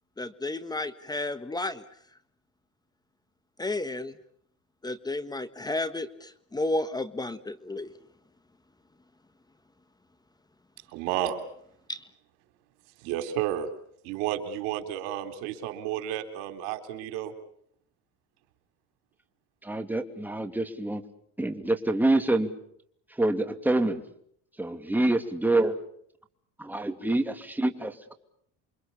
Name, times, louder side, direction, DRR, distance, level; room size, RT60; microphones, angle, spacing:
voice 1, 0.2-1.8 3.6-4.1 4.8-7.9 11.9-12.0, left 2 dB, 10° left, 12 dB, 1.5 m, -32 dB
voice 2, 10.9-11.4 13.0-13.7 14.0-17.3, right 11 dB, 90° right, 8 dB, 3.6 m, -31 dB
voice 3, 19.6-21.0 21.4-22.5 23.2-24.0 24.6-25.8 26.6-28.1, right 2 dB, 5° right, 6 dB, 2.8 m, -26 dB
29.0 x 24.5 x 7.1 m, 0.67 s
cardioid pair, 120°, 32 cm